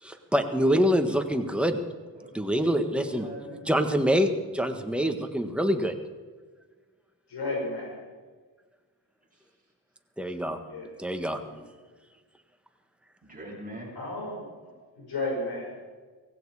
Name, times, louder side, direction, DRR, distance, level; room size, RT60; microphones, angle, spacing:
voice 1, 0.0-1.8 2.3-3.3 3.7-6.0 10.2-10.6 11.0-11.4, equal, 5° right, 6 dB, 1.5 m, -25 dB
voice 2, 2.1-4.4 13.2-14.0, right 1 dB, 20° right, -3 dB, 6.9 m, -42 dB
voice 3, 7.3-8.0 10.6-10.9 11.4-11.6 13.9-14.5 15.0-15.7, left 2 dB, 65° left, 0 dB, 6.2 m, -33 dB
17.5 x 16.0 x 4.9 m, 1.4 s
cardioid pair, 95°, 42 cm